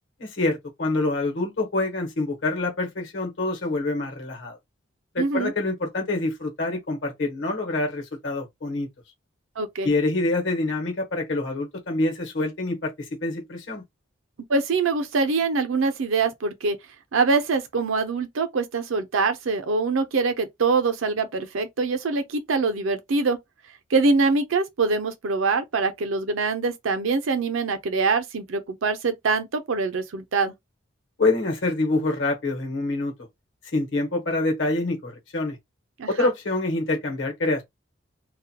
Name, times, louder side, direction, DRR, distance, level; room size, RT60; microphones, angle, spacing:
voice 1, 0.2-4.6 5.1-8.9 9.8-12.9 13.2-13.8 31.2-33.1 33.7-35.6 36.1-37.6, left 2 dB, 70° left, 1.0 m, -26 dB
voice 2, 5.2-5.5 9.6-9.9 14.5-16.8 17.1-23.4 23.9-30.5 36.0-36.3, right 4 dB, 85° right, 0.6 m, -24 dB
2.3 x 2.2 x 2.7 m
head